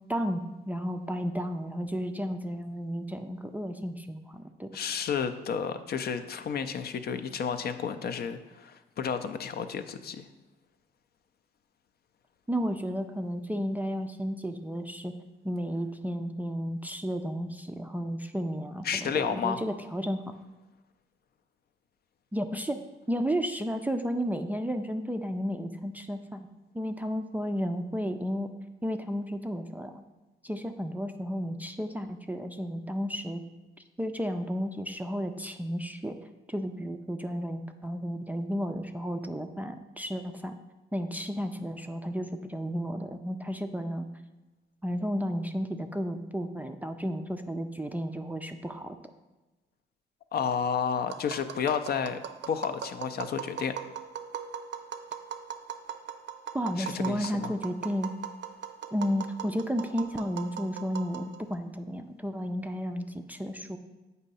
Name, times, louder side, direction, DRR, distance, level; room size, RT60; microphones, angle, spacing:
voice 1, 0.1-4.7 12.5-15.1 15.4-20.4 22.3-22.8 23.1-26.5 26.7-28.5 28.8-30.0 30.4-33.4 34.0-36.2 36.5-40.6 40.9-44.1 44.8-49.0 56.5-58.1 58.9-63.8, equal, 10° right, 6 dB, 0.3 m, -33 dB
voice 2, 4.7-10.3 18.8-19.6 50.3-52.2 52.5-53.7 56.8-57.5, left 7 dB, 55° left, 9 dB, 0.5 m, -31 dB
Tap, 51.1-61.5, right 9 dB, 65° right, 0.5 m, -40 dB
7.7 x 2.7 x 5.4 m, 1.1 s
cardioid pair, 90°, 20 cm